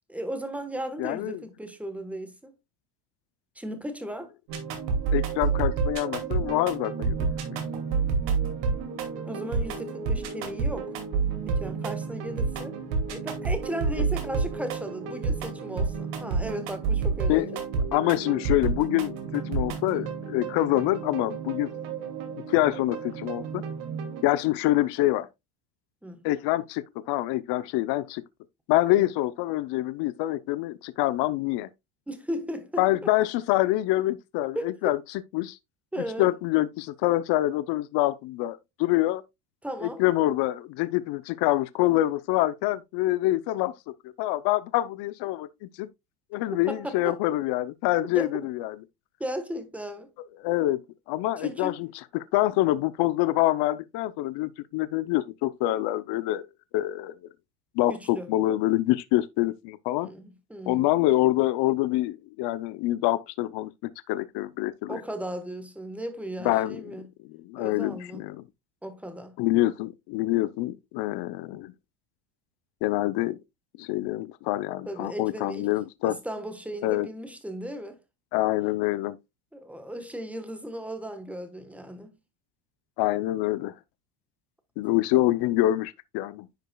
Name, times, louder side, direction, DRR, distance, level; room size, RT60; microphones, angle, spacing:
voice 1, 0.1-2.5 3.5-4.3 9.1-10.9 11.5-12.8 13.1-17.5 19.9-20.0 26.0-26.3 28.9-29.0 32.1-32.9 34.5-34.7 35.9-36.3 39.6-40.0 46.7-47.2 48.1-48.5 49.2-50.1 51.4-51.8 57.9-58.3 60.0-60.8 64.9-67.1 67.6-68.2 68.8-69.4 74.9-75.7 76.0-78.0 79.5-82.1 84.8-84.9, equal, 5° right, 1.2 m, -36 dB
voice 2, 1.0-1.4 5.1-7.6 17.3-21.7 22.5-23.6 24.2-25.3 26.2-28.2 28.7-31.7 32.8-35.0 35.3-35.6 36.0-39.2 39.8-43.7 44.0-45.9 46.3-48.8 50.4-50.8 51.1-51.9 52.1-56.4 56.7-57.1 57.8-60.1 60.7-63.7 64.1-65.0 66.4-66.9 67.2-68.4 69.4-71.7 72.8-73.4 73.8-76.2 76.8-77.1 78.3-79.2 83.0-83.7 84.8-86.5, left 16 dB, 55° left, 0.7 m, -26 dB
sound 1, 4.5-24.2, right 5 dB, 70° right, 2.5 m, -30 dB
10.0 x 5.3 x 2.3 m
supercardioid pair, 115°, 49 cm